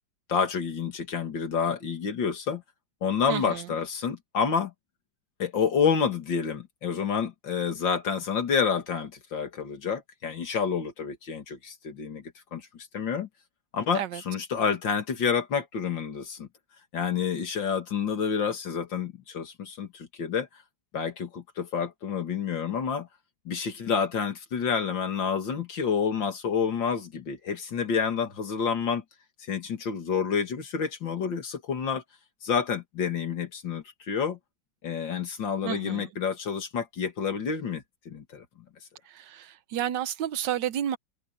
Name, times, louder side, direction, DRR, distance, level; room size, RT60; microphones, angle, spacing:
voice 1, 0.3-2.6 3.0-4.7 5.4-12.2 12.5-13.3 13.7-16.5 16.9-20.5 20.9-23.1 23.5-29.0 29.5-32.0 32.4-34.4 34.8-38.4, left 6 dB, 75° left, 2.8 m, -29 dB
voice 2, 3.3-3.6 13.9-14.2 35.6-36.1 39.1-41.0, right 11 dB, 75° right, 1.4 m, -31 dB
omnidirectional pair, 2.0 m